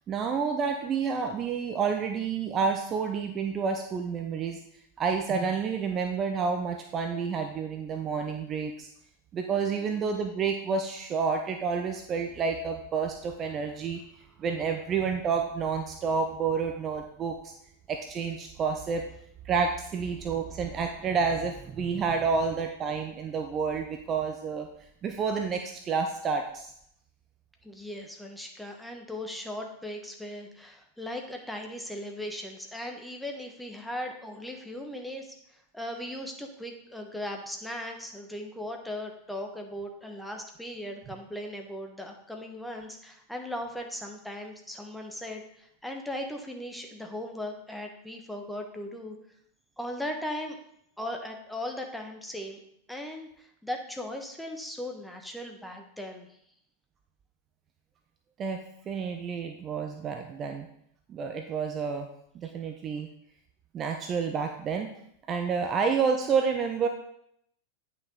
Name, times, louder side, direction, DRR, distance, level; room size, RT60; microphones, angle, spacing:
voice 1, 0.1-4.6 5.0-8.9 9.3-14.0 14.4-17.5 17.9-19.1 19.4-24.7 25.0-26.7 58.4-58.6 58.9-60.7 61.1-62.1 62.3-63.1 63.7-64.9 65.3-66.9, right 5 dB, 30° right, 5 dB, 0.7 m, -29 dB
voice 2, 27.6-49.2 49.8-50.6 51.0-52.6 52.9-56.3 62.4-62.5, left 1 dB, 5° left, 2 dB, 1.3 m, -38 dB
9.2 x 5.8 x 3.9 m, 0.73 s
figure-of-eight pair, 90°, 0 cm